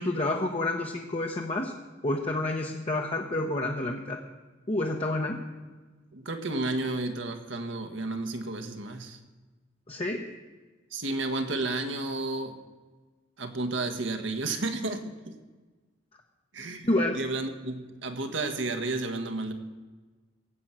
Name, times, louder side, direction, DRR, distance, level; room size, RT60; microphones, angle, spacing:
voice 1, 0.0-1.7 2.0-4.2 4.7-5.4 9.9-10.3 16.8-17.2, left 2 dB, 35° left, 0 dB, 1.0 m, -29 dB
voice 2, 6.1-9.2 10.9-12.6 13.4-15.3 16.5-19.5, right 2 dB, 70° right, 7 dB, 1.5 m, -32 dB
17.5 x 8.0 x 7.6 m, 1.3 s
head